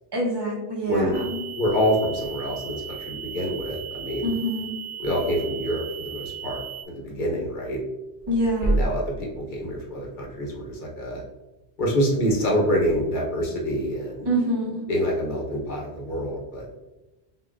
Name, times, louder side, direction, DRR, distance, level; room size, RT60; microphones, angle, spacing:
voice 1, 0.1-1.5 4.2-4.8 8.3-8.9 14.2-14.8, right 1 dB, 25° right, -4 dB, 1.0 m, -26 dB
sound 1, 1.1-6.8, right 10 dB, 55° right, 1.7 m, -37 dB
voice 2, 1.6-4.3 5.0-7.8 8.6-11.2 11.8-14.3 14.9-16.7, equal, 50° left, -1 dB, 1.0 m, -26 dB
6.5 x 2.6 x 2.5 m, 1.1 s
omnidirectional pair, 1.1 m